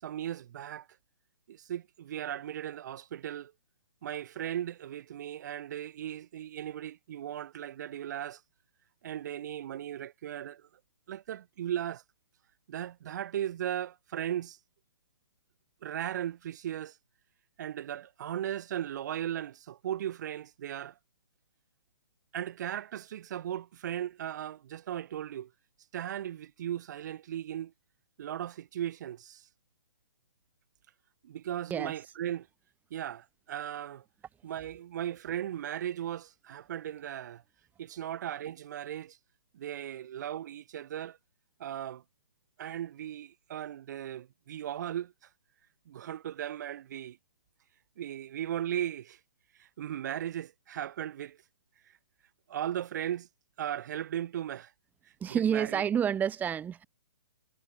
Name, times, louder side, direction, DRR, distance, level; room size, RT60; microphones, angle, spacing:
voice 1, 0.0-0.9 1.5-3.5 4.0-8.4 9.0-10.7 11.1-12.0 12.7-14.6 15.8-17.0 17.6-21.0 22.3-25.5 25.9-27.7 28.2-29.5 31.2-32.5 32.9-34.0 34.4-37.4 37.8-39.2 39.5-41.2 41.6-42.0 42.6-45.1 45.9-47.2 48.0-49.2 49.6-51.4 52.5-53.3 53.6-54.7 55.3-55.9, right 11 dB, 45° right, 5.2 m, -37 dB
voice 2, 55.2-56.8, right 8 dB, 10° right, 4.0 m, -29 dB
figure-of-eight pair, 125°, 14 cm